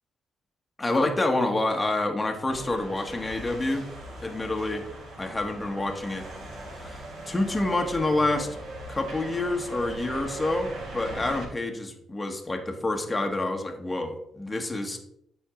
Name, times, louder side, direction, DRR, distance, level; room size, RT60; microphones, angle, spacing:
voice 1, 0.8-3.9 4.2-4.8 5.2-6.3 6.7-8.6 8.9-15.1, left 2 dB, 20° left, 4 dB, 1.3 m, -28 dB
sound 1, 2.5-11.5, right 2 dB, 70° right, 2.7 m, -39 dB
8.6 x 5.5 x 3.7 m, 0.76 s
cardioid pair, 90°, 0 cm